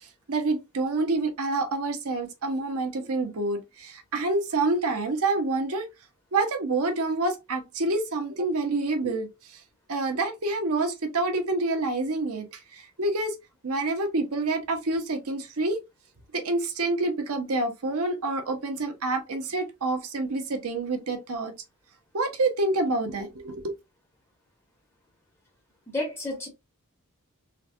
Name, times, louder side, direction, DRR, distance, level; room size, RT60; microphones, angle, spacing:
voice 1, 0.3-5.9 6.3-9.3 9.9-12.4 13.0-13.3 13.6-15.8 16.3-21.5 22.1-23.7, right 2 dB, 85° right, 0.8 m, -27 dB
voice 2, 25.9-26.5, left 2 dB, 10° left, 1.2 m, -31 dB
3.9 x 2.2 x 2.6 m
head